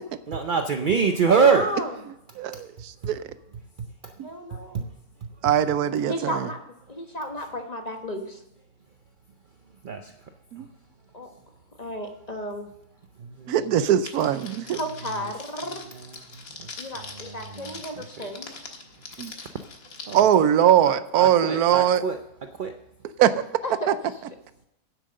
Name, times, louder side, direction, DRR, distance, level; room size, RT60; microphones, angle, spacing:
voice 1, 0.3-1.7 3.8-4.1 4.5-4.8 5.2-5.3 9.8-10.1 10.6-10.7 13.2-13.6 15.2-15.3 15.8-18.3 20.1-22.8, right 5 dB, 60° right, 6 dB, 0.5 m, -26 dB
voice 2, 1.4-1.9 4.2-4.9 6.1-6.6 6.9-8.4 11.1-11.3 11.8-12.7 14.7-15.8 16.8-18.5 23.6-23.9, left 1 dB, 30° left, 4 dB, 1.1 m, -33 dB
voice 3, 2.4-3.2 4.2-4.3 5.4-6.5 10.5-10.7 13.5-14.8 19.2-19.3 20.1-22.0 23.2-23.5 23.9-24.0, right 10 dB, 80° right, 14 dB, 1.1 m, -21 dB
Crackle, 14.1-20.2, left 4 dB, 65° left, 1.9 m, -42 dB
10.0 x 7.8 x 6.5 m, 0.83 s
omnidirectional pair, 1.6 m